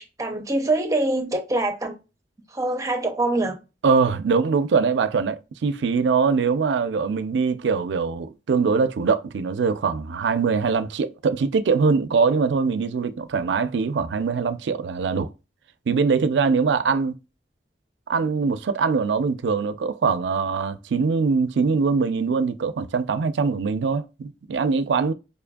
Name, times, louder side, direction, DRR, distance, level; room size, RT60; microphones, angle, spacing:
voice 1, 0.0-2.0 2.5-3.6, right 2 dB, 20° right, 0.7 m, -24 dB
voice 2, 3.8-15.3 15.9-17.2 18.1-25.1, right 5 dB, 80° right, 0.4 m, -22 dB
5.3 x 2.5 x 2.2 m
head